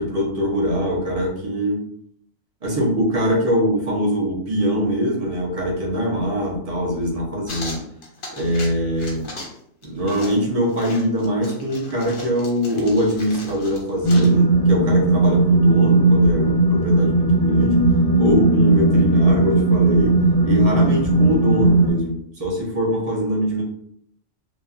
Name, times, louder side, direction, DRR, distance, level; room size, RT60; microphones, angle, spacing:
voice 1, 0.0-1.8 2.6-7.8 8.3-9.3 9.8-17.8 18.2-20.1 20.4-23.6, equal, 35° right, -3 dB, 0.6 m, -22 dB
sound 1, 7.5-8.7 9.0-9.6 9.8-14.4, left 2 dB, 50° left, 0.7 m, -37 dB
sound 2, 14.0-21.9, right 2 dB, 15° left, 0.6 m, -17 dB
2.8 x 2.3 x 2.4 m, 0.69 s
omnidirectional pair, 1.4 m